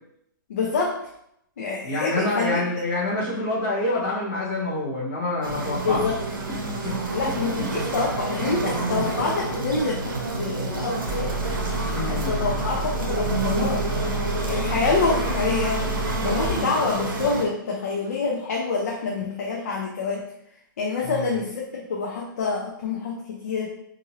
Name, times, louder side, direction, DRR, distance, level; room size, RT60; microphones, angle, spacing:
voice 1, 0.5-1.0 1.6-2.6 5.7-6.2 7.1-11.3 12.1-13.9 14.4-15.9 16.2-20.3 20.8-23.7, left 4 dB, 45° left, -2 dB, 0.4 m, -26 dB
voice 2, 1.8-6.0 6.8-6.9 7.2-7.5 11.9-12.5 21.0-21.4, left 2 dB, 10° left, -12 dB, 0.9 m, -27 dB
sound 1, 5.4-17.5, right 2 dB, 75° right, 0.8 m, -29 dB
sound 2, 11.1-16.6, right 2 dB, 25° right, 1.3 m, -30 dB
2.8 x 2.6 x 2.8 m, 0.77 s
hypercardioid pair, 175°, 11 cm